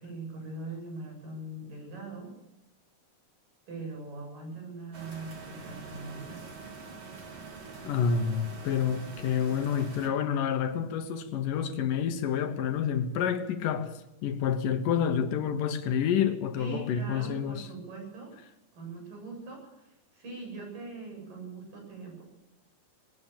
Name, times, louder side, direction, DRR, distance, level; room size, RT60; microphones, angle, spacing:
voice 1, 0.0-2.3 3.7-6.6 16.6-18.3 18.7-22.2, right 3 dB, 85° right, 9.8 m, -41 dB
sound 1, 4.9-10.1, right 4 dB, 50° right, 3.8 m, -45 dB
voice 2, 7.8-13.9 14.2-17.7, left 7 dB, 80° left, 2.8 m, -28 dB
20.5 x 19.0 x 7.2 m
omnidirectional pair, 3.8 m